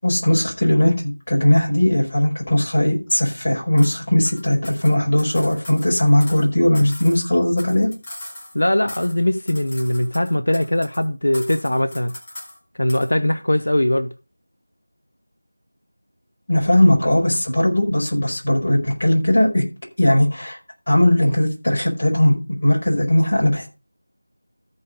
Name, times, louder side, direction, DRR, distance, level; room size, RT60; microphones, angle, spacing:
voice 1, 0.0-7.9 16.5-19.6 20.0-20.6 20.9-23.7, left 1 dB, 35° left, 5.1 m, -18 dB
sound 1, 3.8-4.0 4.3-6.5 6.7-8.6 8.9-9.2 9.5-11.1 11.3-12.6 12.9-13.1, left 1 dB, 15° left, 1.8 m, -39 dB
voice 2, 8.5-12.1 12.8-14.1, left 1 dB, 85° left, 0.9 m, -20 dB
14.0 x 5.5 x 5.2 m
figure-of-eight pair, 180°, 0 cm